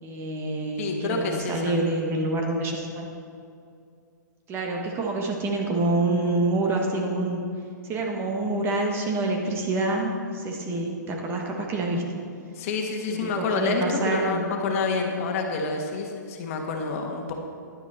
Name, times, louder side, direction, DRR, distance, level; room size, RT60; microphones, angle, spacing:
voice 1, 0.0-3.2 4.5-7.4 7.8-12.2 13.1-14.5, right 2 dB, 25° right, 1 dB, 1.5 m, -27 dB
voice 2, 0.8-1.8 12.5-17.3, left 4 dB, 45° left, 2 dB, 1.5 m, -28 dB
11.0 x 9.8 x 4.3 m, 2.4 s
hypercardioid pair, 130°, 10 cm